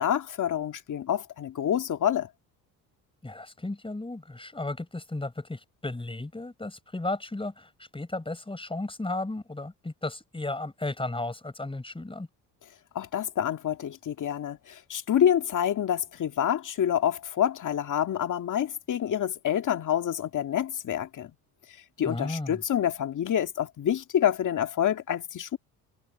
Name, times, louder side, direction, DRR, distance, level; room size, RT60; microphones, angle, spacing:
voice 1, 0.0-2.3 12.9-21.3 22.0-25.6, left 10 dB, 50° left, 2.2 m, -27 dB
voice 2, 3.2-12.3 22.0-22.6, left 2 dB, 15° left, 7.0 m, -34 dB
supercardioid pair, 80°, 39 cm